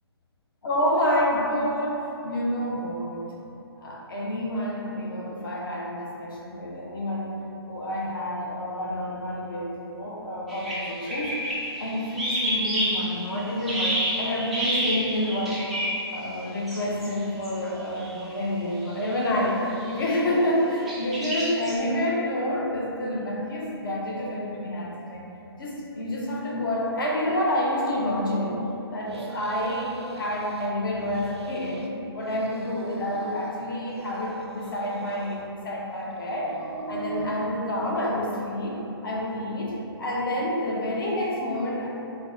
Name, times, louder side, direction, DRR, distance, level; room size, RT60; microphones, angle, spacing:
voice 1, 0.6-3.3 3.8-11.4 11.8-15.7 16.1-25.2 25.6-36.5 36.9-41.9, left 1 dB, 55° left, -3 dB, 0.7 m, -28 dB
sound 1, 10.5-16.1 16.7-17.2 17.4-17.5 18.0-18.2 18.9-19.2 19.8-20.2 20.9-21.8, equal, ahead, 0.3 m, -29 dB
sound 2, 29.1-30.7 31.0-31.9 32.1-33.5 33.9-35.5 35.8-37.4, right 3 dB, 80° right, 0.4 m, -41 dB
3.5 x 2.1 x 3.7 m, 2.9 s
hypercardioid pair, 150°, 14 cm